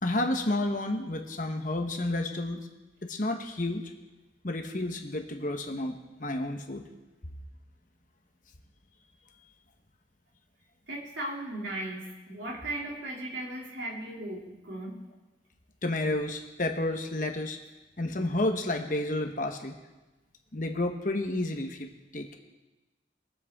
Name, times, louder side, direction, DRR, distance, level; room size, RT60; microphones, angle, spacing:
voice 1, 0.0-2.7 3.0-3.9 4.4-6.9 15.8-17.6 18.0-19.7 20.5-21.9 22.1-22.4, left 1 dB, 45° left, 4 dB, 1.2 m, -31 dB
voice 2, 10.9-15.0, right 1 dB, 85° right, -2 dB, 3.0 m, -37 dB
23.0 x 7.8 x 3.7 m, 1.1 s
head